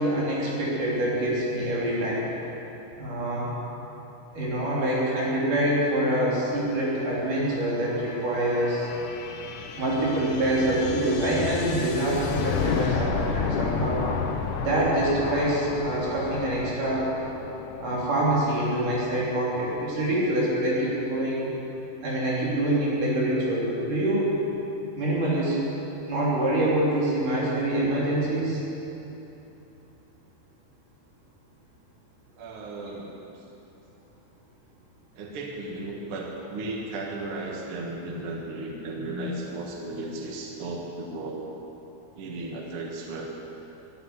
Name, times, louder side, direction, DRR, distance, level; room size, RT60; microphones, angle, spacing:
voice 1, 0.0-2.3 3.0-3.5 4.3-8.9 9.8-14.1 14.6-17.1 17.8-21.5 22.0-24.4 24.9-25.6 26.1-28.6, right 1 dB, 50° right, -6 dB, 4.8 m, -25 dB
sound 1, 6.1-19.6, left 6 dB, 85° left, 1.8 m, -33 dB
voice 2, 32.4-33.2 35.1-41.4 42.1-43.3, right 2 dB, 70° right, 0 dB, 1.3 m, -35 dB
13.5 x 9.7 x 9.7 m, 3.0 s
omnidirectional pair, 5.1 m